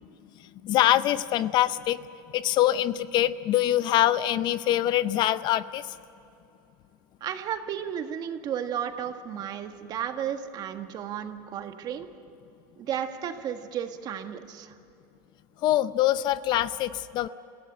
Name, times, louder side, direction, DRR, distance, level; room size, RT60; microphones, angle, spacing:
voice 1, 0.4-2.0 2.3-5.9 15.6-17.3, left 13 dB, 45° left, 15 dB, 0.6 m, -24 dB
voice 2, 7.2-12.1 12.8-14.7, right 9 dB, 40° right, 7 dB, 1.7 m, -33 dB
28.0 x 16.5 x 8.8 m, 2.8 s
supercardioid pair, 135°, 11 cm